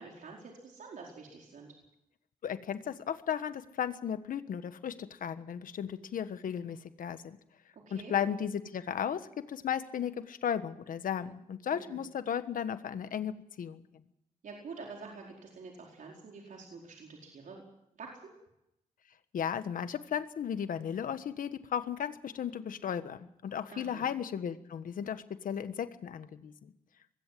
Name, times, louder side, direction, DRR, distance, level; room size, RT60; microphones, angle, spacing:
voice 1, 0.0-1.7 7.7-8.1 11.7-12.1 14.4-17.6 18.0-18.3 23.7-24.1, right 4 dB, 70° right, -1 dB, 4.6 m, -47 dB
voice 2, 2.4-7.4 7.9-13.8 19.3-26.5, left 8 dB, 80° left, 11 dB, 1.4 m, -35 dB
21.5 x 16.5 x 7.6 m, 0.82 s
cardioid pair, 80°, 14 cm